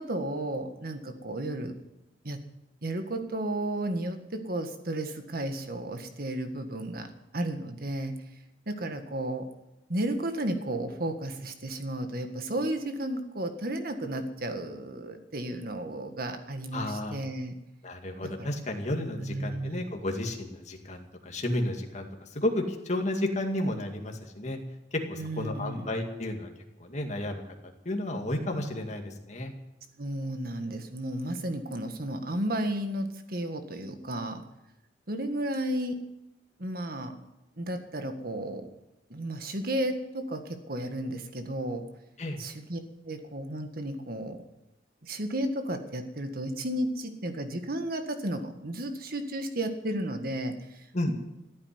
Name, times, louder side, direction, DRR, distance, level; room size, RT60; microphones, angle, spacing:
voice 1, 0.0-1.7 2.2-2.4 2.8-8.1 8.7-9.5 9.9-17.6 18.2-18.5 19.2-19.9 25.2-25.9 30.0-34.4 35.1-36.0 36.6-37.2 37.6-38.7 39.1-41.8 42.4-44.4 45.0-51.1, right 1 dB, 55° right, 7 dB, 1.7 m, -33 dB
voice 2, 16.7-17.2 17.8-24.6 25.1-26.5 26.8-27.4 27.8-29.5 42.2-42.4 50.9-51.1, left 1 dB, 40° left, 3 dB, 2.1 m, -32 dB
15.0 x 8.7 x 9.8 m, 0.93 s
head